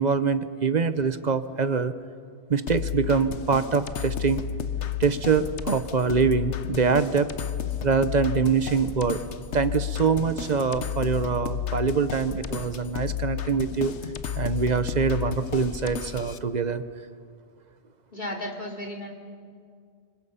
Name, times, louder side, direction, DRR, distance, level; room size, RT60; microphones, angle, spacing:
voice 1, 0.0-1.9 2.5-4.4 5.0-7.3 7.8-9.2 9.5-13.9 14.3-16.8, right 5 dB, 40° right, 12 dB, 1.0 m, -24 dB
sound 1, 2.7-16.4, left 8 dB, 90° left, 1.2 m, -32 dB
voice 2, 18.1-19.1, left 1 dB, 45° left, 0 dB, 3.4 m, -34 dB
29.0 x 25.5 x 5.7 m, 2.2 s
omnidirectional pair, 1.1 m